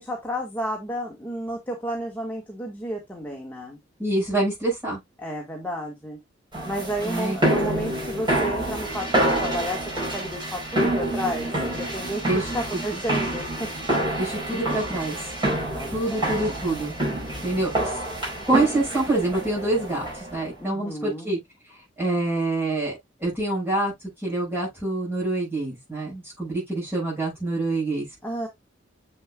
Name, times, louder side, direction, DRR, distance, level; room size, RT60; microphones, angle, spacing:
voice 1, 0.0-3.8 5.2-6.2 6.7-12.2 12.5-13.7 15.7-16.6 20.6-21.3 28.2-28.5, equal, 10° left, 1.5 m, -32 dB
voice 2, 4.0-5.0 7.0-7.4 12.2-12.5 12.9-13.0 14.2-15.2 15.9-16.9 17.4-18.0 18.5-21.4 22.0-23.9 24.2-28.1, right 2 dB, 10° right, 6.0 m, -26 dB
sound 1, 6.5-20.4, right 1 dB, 25° right, 4.9 m, -27 dB
7.5 x 6.5 x 2.3 m
head